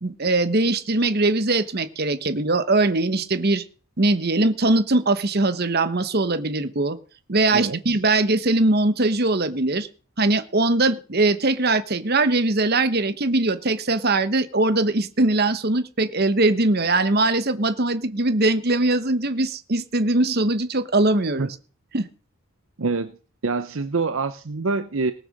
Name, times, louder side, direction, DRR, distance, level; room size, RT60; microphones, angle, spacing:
voice 1, 0.0-3.6 4.0-7.0 7.3-9.9 10.2-21.5 21.9-22.1, right 2 dB, 45° right, 12 dB, 1.1 m, -21 dB
voice 2, 7.5-8.0 21.4-21.5 22.8-23.1 23.4-25.1, right 4 dB, 65° right, 10 dB, 0.7 m, -25 dB
18.5 x 6.7 x 6.6 m, 0.38 s
head